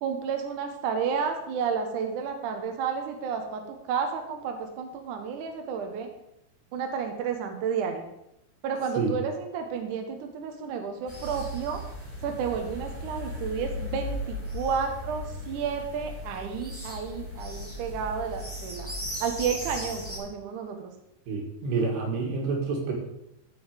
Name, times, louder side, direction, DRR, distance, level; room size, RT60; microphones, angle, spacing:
voice 1, 0.0-6.1 6.7-8.1 8.6-11.8 12.2-18.9 19.2-20.9, right 6 dB, 65° right, 4 dB, 2.2 m, -31 dB
sound 1, 11.1-20.2, left 1 dB, 5° right, 0.9 m, -37 dB
voice 2, 21.3-22.9, right 4 dB, 85° right, 0 dB, 4.1 m, -28 dB
13.0 x 5.6 x 5.0 m, 0.83 s
omnidirectional pair, 4.6 m